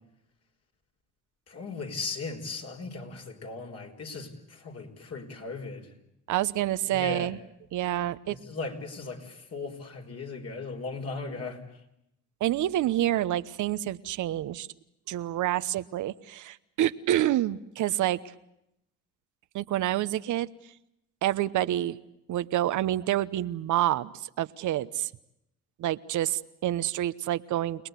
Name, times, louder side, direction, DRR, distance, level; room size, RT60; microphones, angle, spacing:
voice 1, 1.5-5.9 6.9-7.3 8.3-11.6, left 3 dB, 55° left, 3 dB, 5.2 m, -37 dB
voice 2, 6.3-7.4 7.7-8.4 12.4-14.7 15.1-18.2 19.5-20.5 21.2-22.0 22.3-25.1 25.8-27.9, right 13 dB, 80° right, 13 dB, 1.0 m, -28 dB
29.5 x 19.5 x 8.2 m, 0.81 s
cardioid pair, 90°, 30 cm